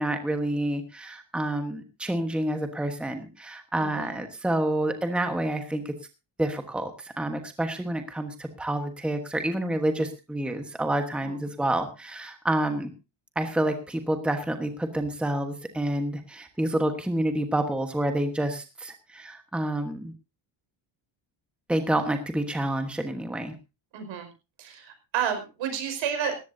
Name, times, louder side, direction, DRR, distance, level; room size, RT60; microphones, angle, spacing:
voice 1, 0.0-5.9 6.4-12.9 13.3-20.1 21.7-23.5, right 1 dB, ahead, 6 dB, 1.2 m, -28 dB
voice 2, 3.8-4.1 11.2-11.4 23.9-24.3 24.6-26.4, right 8 dB, 75° right, 6 dB, 5.2 m, -31 dB
19.0 x 14.5 x 2.7 m, 0.29 s
cardioid pair, 175°, 45 cm